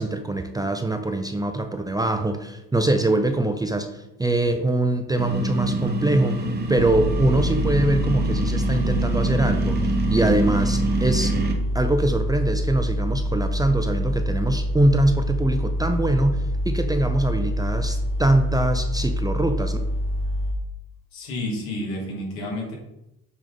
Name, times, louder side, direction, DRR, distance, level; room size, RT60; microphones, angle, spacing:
voice 1, 0.0-9.8 10.1-11.3 11.7-19.8, right 2 dB, 10° right, 7 dB, 0.4 m, -23 dB
sound 1, 5.2-11.5, right 2 dB, 25° right, 1.0 m, -26 dB
sound 2, 6.8-20.5, equal, 75° right, 1.8 m, -26 dB
voice 2, 21.1-22.8, left 1 dB, 85° left, -2 dB, 2.2 m, -30 dB
7.5 x 3.4 x 3.9 m, 0.89 s
supercardioid pair, 95°, 38 cm